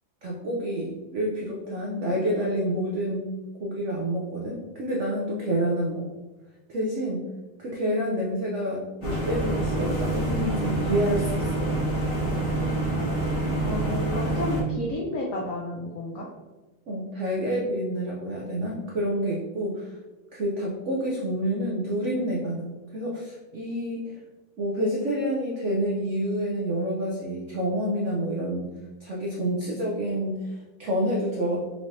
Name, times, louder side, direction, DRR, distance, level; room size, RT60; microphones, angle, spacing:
voice 1, 0.2-6.1 6.7-7.3 7.6-11.8 16.9-19.9 20.3-24.2 24.6-28.7 29.0-31.6, equal, 90° right, -3 dB, 0.6 m, -28 dB
sound 1, 9.0-14.6, right 1 dB, 30° left, 1.5 m, -26 dB
voice 2, 13.6-16.3, left 1 dB, 90° left, -2 dB, 0.7 m, -31 dB
4.7 x 3.2 x 2.6 m, 1.2 s
omnidirectional pair, 2.1 m